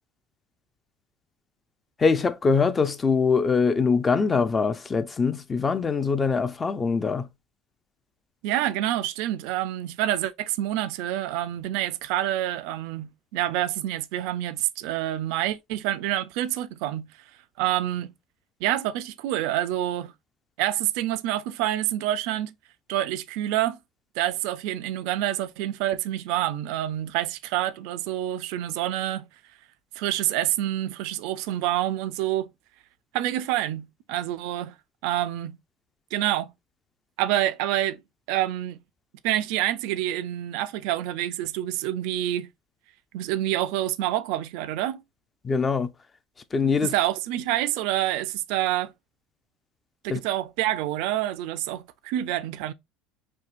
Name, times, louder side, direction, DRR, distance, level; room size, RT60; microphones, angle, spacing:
voice 1, 2.0-7.3 45.4-45.9 46.5-46.9 50.1-50.2, left 5 dB, 20° left, 0.4 m, -23 dB
voice 2, 8.4-17.1 17.6-18.1 18.6-20.1 20.6-22.5 22.9-23.8 24.2-29.3 30.0-32.5 33.1-34.7 35.0-35.6 36.1-36.5 37.2-38.0 38.3-38.8 39.2-42.5 43.1-45.0 46.8-48.9 50.0-52.7, right 13 dB, 70° right, 0.4 m, -27 dB
4.4 x 2.6 x 2.4 m
cardioid pair, 145°, 0 cm